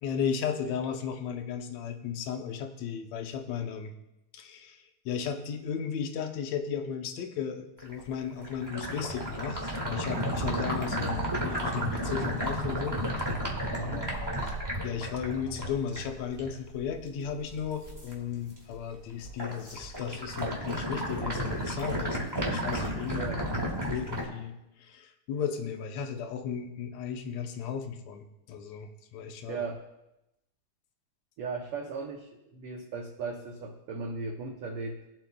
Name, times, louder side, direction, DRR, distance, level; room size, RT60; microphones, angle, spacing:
voice 1, 0.0-3.9 4.3-13.0 13.8-14.5 14.8-22.2 22.5-23.3 23.8-29.6, left 7 dB, 70° left, 5 dB, 1.9 m, -35 dB
sound 1, 7.8-18.1 18.5-18.9 19.2-24.2, equal, 10° right, 1.1 m, -33 dB
voice 2, 13.7-14.1 23.1-23.4 29.5-29.8 31.4-35.0, right 4 dB, 90° right, 2 dB, 1.2 m, -37 dB
21.5 x 7.6 x 2.3 m, 0.90 s
omnidirectional pair, 3.7 m